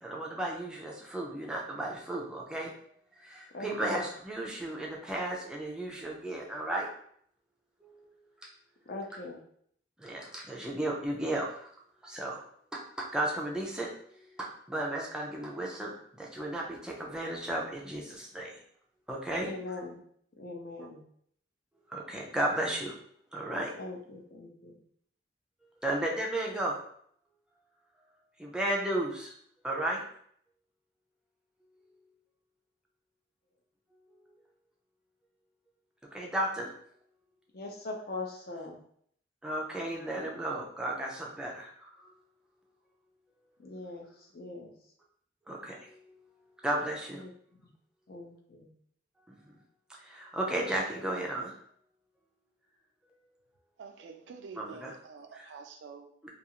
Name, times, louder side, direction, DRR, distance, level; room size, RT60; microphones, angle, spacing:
voice 1, 0.0-2.7 3.2-6.9 7.8-8.0 10.0-11.7 12.0-12.4 12.7-18.6 19.1-19.8 21.9-22.9 23.3-23.7 25.8-26.8 28.4-29.3 29.6-30.0 36.1-36.7 39.4-42.1 45.5-46.1 46.6-47.2 49.3-49.4 50.0-51.5 54.6-54.9 55.3-55.5 56.2-56.3, right 1 dB, 5° right, -2 dB, 0.4 m, -34 dB
voice 2, 3.5-4.0 8.9-9.4 19.4-20.0 20.4-21.0 23.8-24.8 37.5-38.8 43.6-44.1 44.3-44.7 47.1-47.3 48.1-48.7, left 2 dB, 50° left, 1 dB, 0.5 m, -41 dB
voice 3, 53.8-56.1, right 5 dB, 75° right, 6 dB, 0.3 m, -47 dB
2.4 x 2.3 x 2.8 m, 0.65 s
head